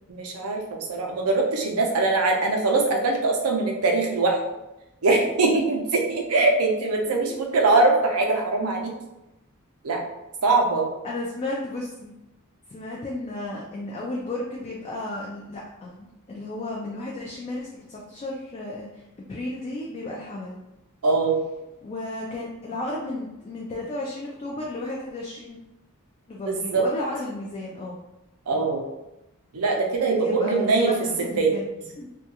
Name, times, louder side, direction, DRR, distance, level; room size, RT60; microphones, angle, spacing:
voice 1, 0.1-4.4 5.0-8.9 9.8-10.0 10.4-10.9 21.0-21.4 26.4-26.9 28.5-28.8 29.5-30.9 31.4-31.5, right 3 dB, 80° right, 2 dB, 0.5 m, -22 dB
voice 2, 11.0-12.1 12.7-19.0 19.3-20.6 21.8-25.6 26.3-27.9 28.5-28.7 30.2-31.7 32.0-32.1, left 2 dB, 30° left, -3 dB, 0.3 m, -33 dB
2.3 x 2.2 x 2.8 m, 0.94 s
head